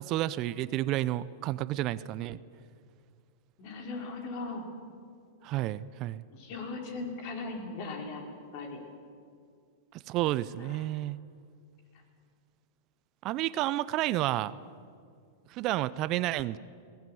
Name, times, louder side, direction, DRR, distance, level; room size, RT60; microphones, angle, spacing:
voice 1, 0.0-2.4 5.4-6.2 9.9-11.2 13.2-14.5 15.5-16.6, right 15 dB, 45° right, 17 dB, 0.7 m, -31 dB
voice 2, 3.6-4.7 6.3-8.2 8.5-8.8 10.6-10.8 14.3-14.4, left 3 dB, 55° left, 2 dB, 5.2 m, -38 dB
21.0 x 18.0 x 9.4 m, 2.2 s
hypercardioid pair, 105°, 0 cm